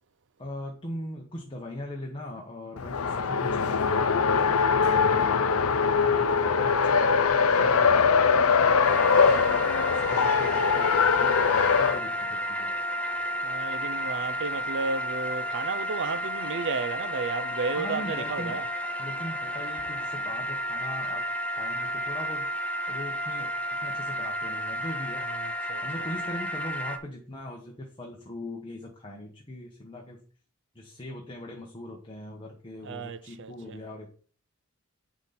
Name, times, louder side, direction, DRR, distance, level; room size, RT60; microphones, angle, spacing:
voice 1, 0.4-9.6 9.9-12.7 17.8-18.6 19.0-22.5 22.9-23.5 23.8-25.3 25.8-30.2 30.7-34.1, left 1 dB, 25° left, 1.2 m, -40 dB
Race car auto racing, 2.8-12.0, left 5 dB, 75° left, 0.6 m, -22 dB
voice 2, 6.0-6.7 7.6-8.7 10.0-11.3 13.4-18.6 25.2-25.8 32.8-33.8, right 4 dB, 55° right, 0.5 m, -34 dB
sound 1, 8.8-27.0, equal, 5° left, 0.6 m, -32 dB
10.0 x 3.9 x 4.3 m
head